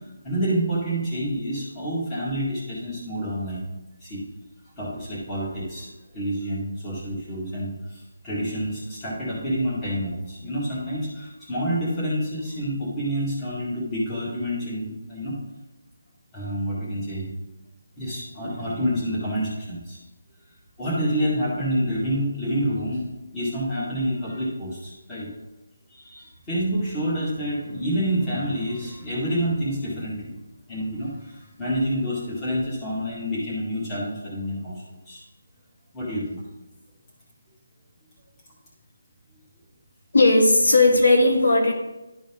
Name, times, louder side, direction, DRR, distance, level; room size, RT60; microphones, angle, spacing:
voice 1, 0.2-3.6 4.0-4.2 4.8-5.9 6.1-15.3 16.3-17.3 18.0-20.0 20.8-25.3 25.9-30.3 30.7-34.7 35.1-35.2 35.9-36.4, equal, 10° left, -8 dB, 1.9 m, -28 dB
voice 2, 40.1-41.7, left 2 dB, 70° left, 1 dB, 1.6 m, -16 dB
12.0 x 4.0 x 3.6 m, 1.0 s
hypercardioid pair, 175°, 0 cm